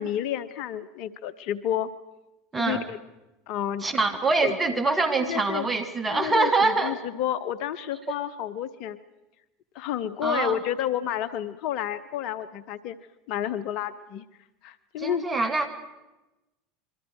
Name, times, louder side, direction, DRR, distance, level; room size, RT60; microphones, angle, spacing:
voice 1, 0.0-1.9 2.6-3.0 3.5-3.9 4.4-4.9 5.2-5.7 6.1-9.0 9.7-13.0 13.3-14.2 14.6-15.4, left 10 dB, 55° left, 14 dB, 1.0 m, -30 dB
voice 2, 3.8-6.9 10.2-10.6 15.0-15.7, right 3 dB, 20° right, 9 dB, 2.9 m, -24 dB
27.5 x 23.5 x 4.8 m, 1.0 s
hypercardioid pair, 80°, 0 cm